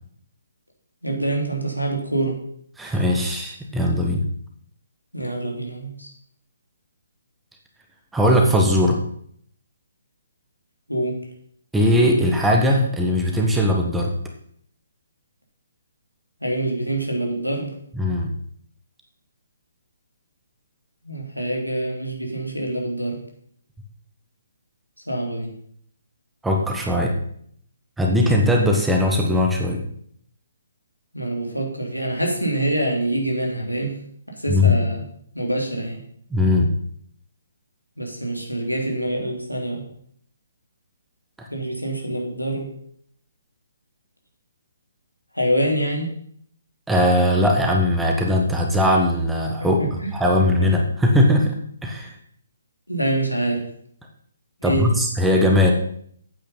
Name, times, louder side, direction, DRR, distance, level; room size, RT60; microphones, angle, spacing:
voice 1, 1.0-2.4 5.1-6.1 10.9-11.2 16.4-17.7 21.0-23.2 25.1-25.5 31.1-34.0 34.4-35.0 35.3-36.0 38.0-39.8 41.5-42.7 45.3-46.1 52.9-53.7 54.6-54.9, right 1 dB, 90° left, 0 dB, 3.2 m, -25 dB
voice 2, 2.8-4.2 8.1-9.0 11.7-14.1 17.9-18.3 26.4-27.2 28.0-29.8 34.5-34.8 36.3-36.7 41.4-41.5 46.9-51.6 51.8-52.1 54.6-55.7, left 1 dB, 5° right, 0 dB, 1.3 m, -19 dB
8.7 x 8.6 x 5.5 m, 0.65 s
figure-of-eight pair, 135°, 0 cm